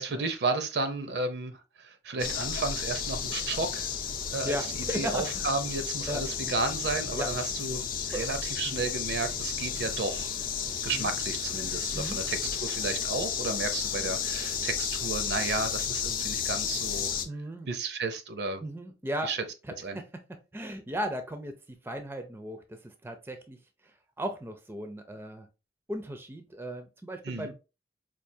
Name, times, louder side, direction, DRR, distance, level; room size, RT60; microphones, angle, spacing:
voice 1, 0.0-3.9 4.3-4.6 4.9-10.3 10.8-17.1 17.7-18.6 19.2-19.4 19.8-20.0 27.2-27.5, right 3 dB, 65° right, 0.6 m, -33 dB
sound 1, 2.2-17.3, left 7 dB, 50° left, 0.5 m, -33 dB
voice 2, 4.4-5.2 6.1-6.2 7.2-7.3 8.1-8.3 8.6-8.8 10.9-11.1 11.9-12.2 17.2-17.7 18.6-19.3 19.9-21.5 21.8-23.6 23.8-25.5 25.9-27.5, right 1 dB, 15° right, 0.4 m, -36 dB
4.6 x 2.4 x 2.7 m
head